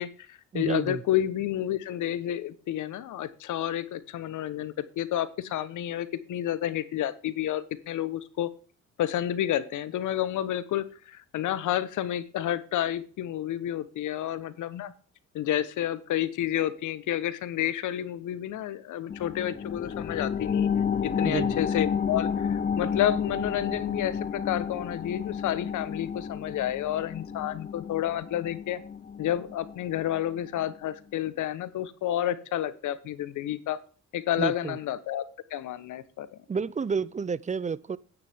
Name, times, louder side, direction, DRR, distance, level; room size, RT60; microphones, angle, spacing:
voice 1, 0.0-8.5 9.0-14.9 15.3-20.7 21.0-28.8 29.2-33.8 34.1-35.2 35.5-36.3, left 12 dB, 80° left, 1.2 m, -30 dB
voice 2, 0.5-1.0 21.2-21.6 34.4-34.8 36.5-38.0, right 5 dB, 25° right, 0.5 m, -30 dB
sound 1, 19.1-30.2 30.6-30.7, left 7 dB, 30° left, 0.8 m, -31 dB
9.8 x 9.5 x 3.6 m
cardioid pair, 90°, 30 cm